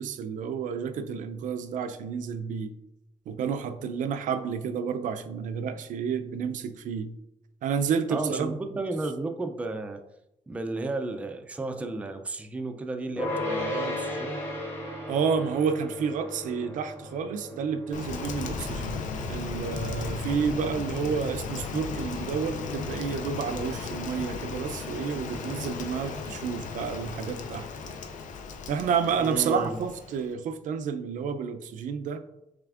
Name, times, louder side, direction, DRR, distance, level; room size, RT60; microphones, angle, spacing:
voice 1, 0.0-2.7 3.3-7.1 7.6-8.6 15.1-27.7 28.7-32.2, right 6 dB, 85° right, 9 dB, 0.4 m, -30 dB
voice 2, 8.1-10.0 10.5-14.4 29.2-29.8, right 2 dB, 10° right, 5 dB, 0.3 m, -33 dB
sound 1, 13.2-24.5, left 1 dB, 20° left, 1.1 m, -37 dB
Rain, 17.9-30.3, left 4 dB, 75° left, 0.5 m, -36 dB
6.6 x 3.4 x 2.4 m, 0.87 s
wide cardioid pair, 165°, 13 cm